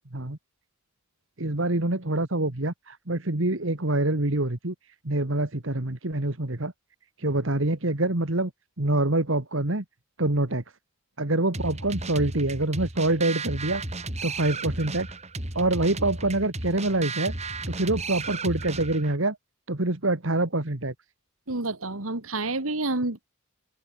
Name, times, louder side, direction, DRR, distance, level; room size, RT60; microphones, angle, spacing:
voice 1, 1.4-4.7 5.0-6.7 7.2-8.5 8.8-9.8 10.2-10.6 11.2-13.8 14.2-15.1 15.5-17.3 17.7-19.4 19.7-20.9, right 2 dB, 65° right, 2.0 m, -25 dB
sound 1, 11.5-19.2, right 3 dB, 30° right, 4.2 m, -34 dB
voice 2, 21.5-23.2, right 2 dB, 80° right, 2.6 m, -29 dB
open air
head